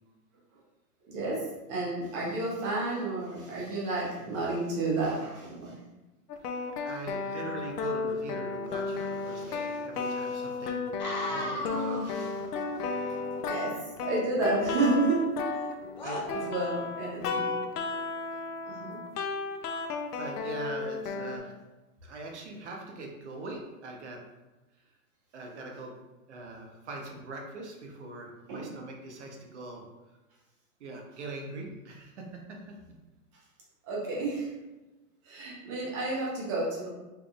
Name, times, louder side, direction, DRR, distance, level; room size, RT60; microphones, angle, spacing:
voice 1, 1.1-5.8 9.3-9.6 10.0-10.1 12.0-12.3 13.0-13.2 13.4-15.3 16.1-17.6 18.6-19.0 28.5-28.7 33.8-34.5 35.2-36.9, right 2 dB, 20° right, -5 dB, 0.8 m, -31 dB
sound 1, 6.3-21.4, left 4 dB, 85° left, 0.7 m, -34 dB
voice 2, 6.8-10.9 11.3-12.0 16.0-16.5 20.2-21.5 22.0-24.2 25.3-26.0 26.3-29.8 30.8-32.8 35.4-35.5, right 2 dB, 50° right, 1 dB, 0.9 m, -41 dB
sound 2, 11.0-12.6 14.5-15.7 16.0-16.2, left 1 dB, 35° left, 0.4 m, -37 dB
4.7 x 3.3 x 2.4 m, 1.1 s
hypercardioid pair, 165°, 45 cm